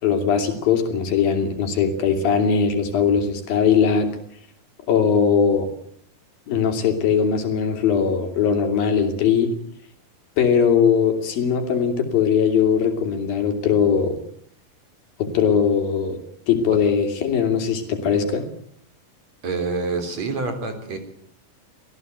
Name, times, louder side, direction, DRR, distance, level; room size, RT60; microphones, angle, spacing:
voice 1, 0.0-4.2 4.9-5.7 6.5-9.6 10.4-14.2 15.2-16.2 16.5-18.5, left 6 dB, 70° left, 6 dB, 4.5 m, -20 dB
voice 2, 19.4-21.0, right 4 dB, 45° right, 7 dB, 4.5 m, -27 dB
25.0 x 17.0 x 8.1 m, 0.65 s
omnidirectional pair, 4.2 m